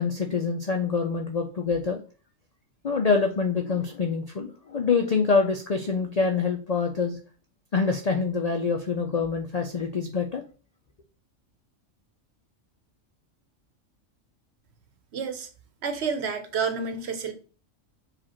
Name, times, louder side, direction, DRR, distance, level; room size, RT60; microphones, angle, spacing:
voice 1, 0.0-2.0 2.8-7.2 7.7-10.4, left 5 dB, 60° left, 0.4 m, -25 dB
voice 2, 15.1-15.5 15.8-17.3, right 5 dB, 60° right, 0.9 m, -29 dB
4.9 x 2.5 x 4.3 m
omnidirectional pair, 1.3 m